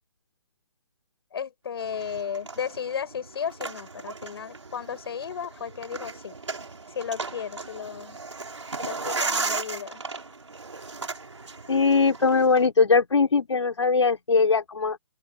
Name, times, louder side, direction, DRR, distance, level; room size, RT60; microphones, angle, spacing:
voice 1, 1.3-6.4 6.9-8.2 8.8-10.0, left 7 dB, 55° left, 6.3 m, -34 dB
sound 1, 1.8-12.7, right 3 dB, 90° right, 5.6 m, -36 dB
voice 2, 11.7-15.0, left 4 dB, 80° left, 4.5 m, -21 dB
open air
hypercardioid pair, 150°, 15 cm